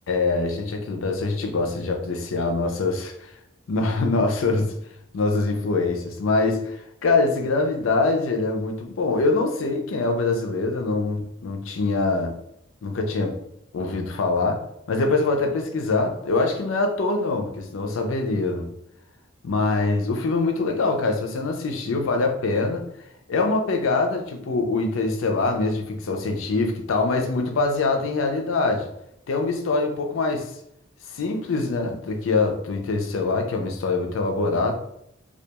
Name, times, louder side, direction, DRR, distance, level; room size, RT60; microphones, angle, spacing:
voice 1, 0.1-3.3 3.7-4.7 5.1-12.3 12.8-13.3 13.7-14.6 14.9-18.7 19.4-22.9 23.3-28.9 29.3-30.5 31.1-34.7, left 3 dB, 80° left, 3 dB, 0.4 m, -24 dB
2.4 x 2.2 x 2.8 m, 0.77 s
head